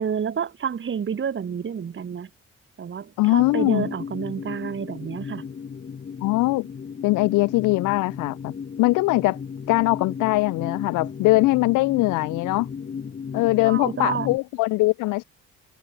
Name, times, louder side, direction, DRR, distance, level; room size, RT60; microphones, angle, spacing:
voice 1, 0.0-2.3 2.8-5.5 13.6-14.3, right 7 dB, 40° right, 1.6 m, -29 dB
voice 2, 3.2-3.9 6.2-6.7 7.0-9.4 9.7-12.7 13.3-15.2, left 21 dB, 90° left, 0.5 m, -21 dB
sound 1, 3.4-14.4, left 6 dB, 30° left, 0.9 m, -35 dB
cardioid pair, 90°, 30 cm